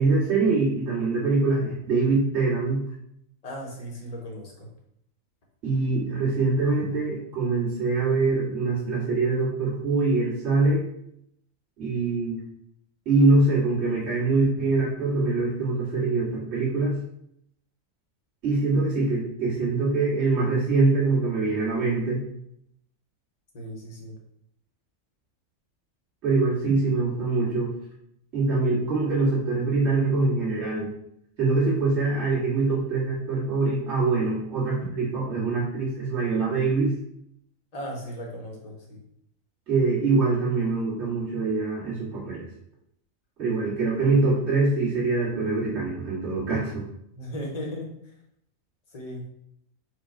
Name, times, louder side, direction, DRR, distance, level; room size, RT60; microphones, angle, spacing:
voice 1, 0.0-2.8 5.6-10.8 11.8-12.4 13.1-17.0 18.4-22.2 26.2-27.7 28.3-30.9 31.4-36.9 39.7-42.5 43.4-46.8, right 3 dB, 50° right, -9 dB, 2.0 m, -24 dB
voice 2, 3.4-4.7 23.5-24.1 37.7-39.0 47.1-47.9 48.9-49.2, equal, 30° left, -1 dB, 0.9 m, -36 dB
4.6 x 2.3 x 4.8 m, 0.75 s
omnidirectional pair, 1.4 m